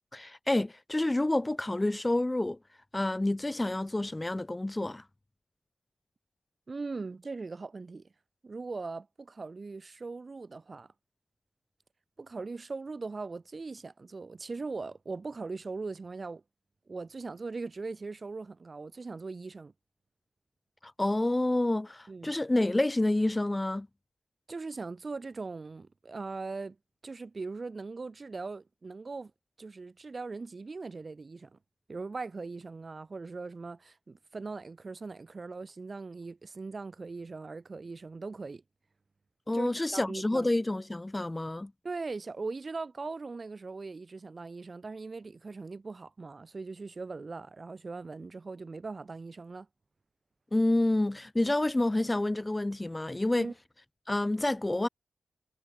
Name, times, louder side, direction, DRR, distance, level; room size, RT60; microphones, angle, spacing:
voice 1, 0.1-2.6 2.9-5.0 20.8-23.9 39.5-41.7 50.5-53.5 54.1-54.9, left 2 dB, 15° left, 0.5 m, -28 dB
voice 2, 6.7-8.1 8.4-10.9 12.2-16.4 16.9-19.7 22.1-22.4 24.5-26.8 27.0-29.3 29.6-31.6 31.9-38.6 39.5-40.5 41.8-49.7 53.4-53.5, right 3 dB, 40° right, 2.4 m, -40 dB
wide cardioid pair, 120°, 0 cm